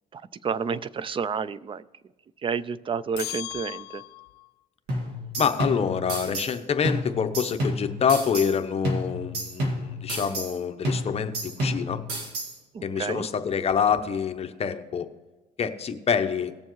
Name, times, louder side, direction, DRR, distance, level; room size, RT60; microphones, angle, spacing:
voice 1, 0.1-1.9 2.4-4.0 12.7-13.3, right 6 dB, 30° right, 18 dB, 0.4 m, -30 dB
sound 1, 3.2-4.5, left 17 dB, 75° left, 0.4 m, -37 dB
sound 2, 4.9-6.6 6.8-8.6 8.8-10.6 10.8-12.6, equal, 85° right, 2.1 m, -30 dB
voice 2, 5.4-12.0 12.8-15.1 15.6-16.5, left 7 dB, 35° left, 8 dB, 0.8 m, -26 dB
18.0 x 7.0 x 3.1 m, 1.2 s
cardioid pair, 110°, 17 cm